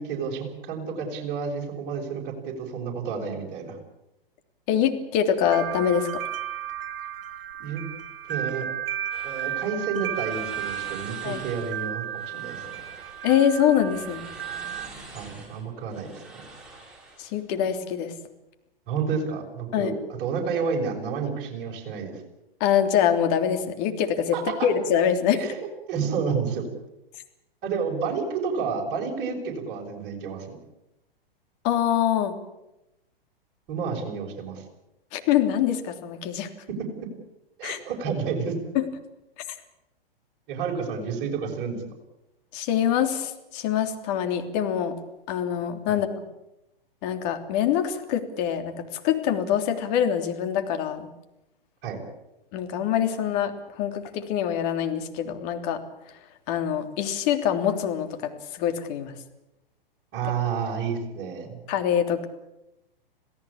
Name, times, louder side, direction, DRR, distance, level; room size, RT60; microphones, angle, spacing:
voice 1, 0.0-3.8 7.6-7.8 8.3-8.7 9.2-12.8 15.1-16.2 18.9-22.2 24.3-24.7 25.3-26.7 27.6-30.6 33.7-34.6 36.8-36.9 37.6-38.5 40.5-41.8 45.9-46.0 51.8-52.0 60.1-61.6, right 6 dB, 35° right, -1 dB, 6.3 m, -30 dB
voice 2, 4.7-6.2 11.2-11.4 13.2-14.3 17.2-18.1 19.7-19.9 22.6-24.3 24.6-25.5 31.6-32.4 35.1-36.5 37.6-37.8 38.7-38.9 42.5-45.0 45.3-46.1 47.0-51.1 52.5-55.8 56.5-59.1 61.7-62.3, left 9 dB, 45° left, 7 dB, 3.3 m, -24 dB
sound 1, 5.4-14.9, right 10 dB, 70° right, 2.6 m, -34 dB
sound 2, 9.1-17.4, right 2 dB, 5° right, 7.2 m, -46 dB
27.0 x 17.0 x 8.7 m, 0.92 s
hypercardioid pair, 120°, 29 cm